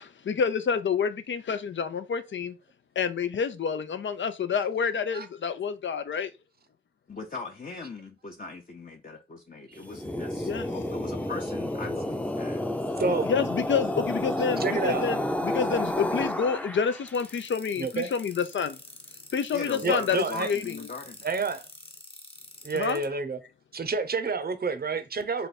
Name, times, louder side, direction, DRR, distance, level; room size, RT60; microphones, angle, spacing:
voice 1, 0.0-2.6 3.0-6.3 10.4-10.7 13.2-18.8 19.3-20.9 22.7-23.0, left 6 dB, 90° left, 0.5 m, -28 dB
voice 2, 7.1-12.6 19.5-21.2, left 4 dB, 45° left, 0.7 m, -39 dB
sound 1, 9.8-17.2, left 1 dB, 5° left, 0.5 m, -30 dB
voice 3, 13.0-13.3 14.6-15.0 17.8-18.1 19.8-20.5 21.2-21.7 22.6-23.4 23.7-25.5, right 4 dB, 55° right, 0.6 m, -29 dB
sound 2, 17.1-23.1, left 2 dB, 30° left, 1.0 m, -46 dB
3.3 x 2.5 x 4.1 m
wide cardioid pair, 55°, 19 cm